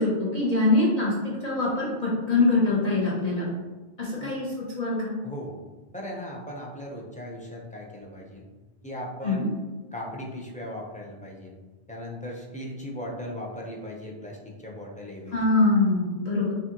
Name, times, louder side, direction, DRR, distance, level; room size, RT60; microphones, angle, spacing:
voice 1, 0.0-3.5 4.0-5.1 9.2-9.4 15.3-16.5, left 2 dB, 40° left, -7 dB, 0.9 m, -24 dB
voice 2, 5.9-8.4 8.8-9.5 9.9-11.6 11.9-15.4, equal, 10° left, -3 dB, 0.6 m, -38 dB
6.2 x 2.4 x 2.9 m, 1.2 s
omnidirectional pair, 1.0 m